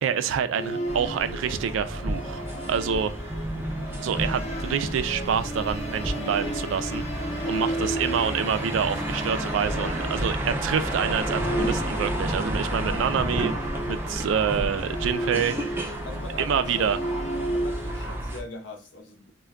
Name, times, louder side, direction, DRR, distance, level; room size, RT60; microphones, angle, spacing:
voice 1, 0.0-3.3 4.0-7.0 7.5-15.9 16.4-17.0, right 7 dB, 85° right, 0.3 m, -27 dB
Musical instrument, 0.5-18.2, right 1 dB, 35° left, 0.6 m, -34 dB
sound 1, 0.9-18.4, right 1 dB, 10° right, 0.4 m, -31 dB
voice 2, 7.6-7.9 16.1-17.1 17.5-19.3, left 2 dB, 75° left, 0.7 m, -41 dB
2.2 x 2.2 x 3.5 m
head